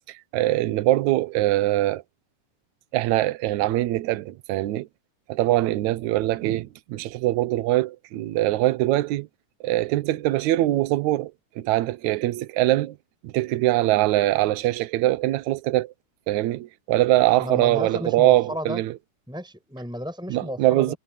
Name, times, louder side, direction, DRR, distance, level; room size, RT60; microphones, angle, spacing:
voice 1, 0.1-2.0 2.9-4.9 5.3-9.3 9.6-13.0 13.2-15.9 16.3-18.9 20.3-20.9, right 16 dB, 70° right, 2.0 m, -23 dB
voice 2, 17.4-18.8 19.3-21.0, equal, ahead, 6.5 m, -33 dB
omnidirectional pair, 3.9 m